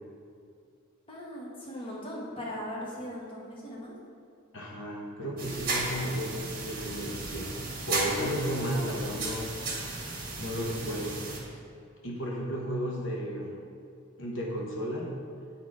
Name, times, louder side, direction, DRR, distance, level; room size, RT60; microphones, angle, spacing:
voice 1, 1.1-4.0, equal, 25° left, -5 dB, 1.1 m, -39 dB
voice 2, 4.5-7.5 7.9-9.5 9.7-11.2 12.0-13.5 14.2-15.1, equal, 65° left, -2 dB, 1.1 m, -34 dB
sound 1, 5.4-11.4, right 3 dB, 45° right, 1.7 m, -35 dB
9.2 x 4.2 x 4.8 m, 2.4 s
head